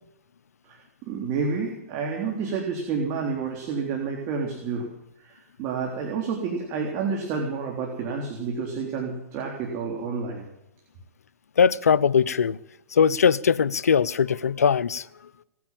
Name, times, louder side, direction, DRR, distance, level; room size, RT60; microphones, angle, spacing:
voice 1, 0.6-4.9 5.2-10.5, right 5 dB, 35° right, 3.7 m, -29 dB
voice 2, 11.6-12.6 12.9-15.1, left 7 dB, 90° left, 0.7 m, -20 dB
18.5 x 9.7 x 7.6 m
hypercardioid pair, 130°, 8 cm